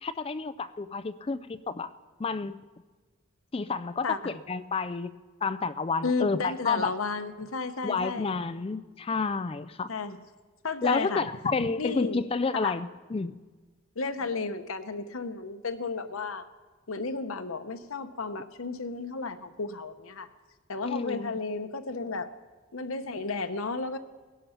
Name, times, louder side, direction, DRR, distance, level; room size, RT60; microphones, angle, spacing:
voice 1, 0.0-1.9 2.2-2.6 3.5-5.2 5.4-6.9 7.8-9.9 10.8-13.4 20.8-21.3, left 4 dB, 25° left, 14 dB, 0.4 m, -30 dB
voice 2, 6.0-8.4 9.9-10.2 10.6-11.2 11.6-12.2 12.6-12.7 14.0-16.5 16.9-20.3 20.7-22.3 22.7-24.0, left 4 dB, 85° left, 9 dB, 0.9 m, -33 dB
18.0 x 11.0 x 5.7 m, 1.3 s
head